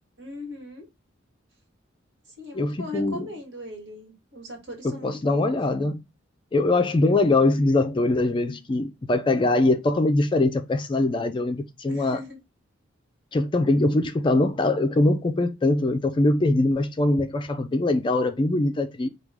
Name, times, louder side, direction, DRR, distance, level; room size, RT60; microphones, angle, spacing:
voice 1, 0.2-0.8 2.4-5.6 11.9-12.4, left 1 dB, 60° right, 1.5 m, -39 dB
voice 2, 2.5-3.3 4.8-6.0 6.5-12.2 13.3-19.1, left 2 dB, 25° left, 0.3 m, -22 dB
4.7 x 2.3 x 3.3 m
head